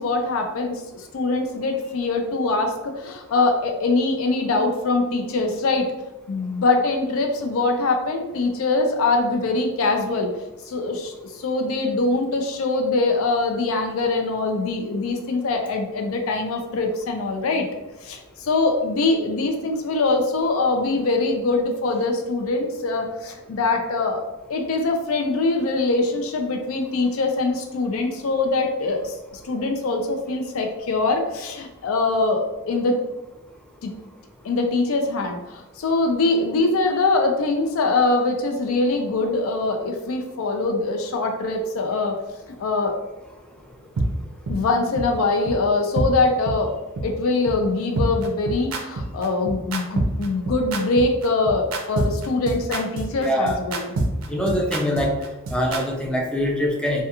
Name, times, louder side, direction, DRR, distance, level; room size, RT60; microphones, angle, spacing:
voice 1, 0.0-5.9 6.3-10.3 10.7-17.7 18.0-24.2 24.5-33.0 33.8-33.9 34.4-42.2 42.6-43.0 44.5-46.7 47.0-53.9, left 3 dB, 75° left, 3 dB, 0.4 m, -23 dB
sound 1, 44.0-44.1 44.5-44.6 45.0-45.1 45.5-45.6 46.0-46.1 46.5-46.6 47.0-47.1 47.5-47.6 48.0-55.8, right 2 dB, 80° right, 0.4 m, -25 dB
voice 2, 53.2-53.6 54.3-55.1 55.5-57.0, equal, 5° left, 0 dB, 0.3 m, -23 dB
2.3 x 2.3 x 2.8 m, 1.0 s
head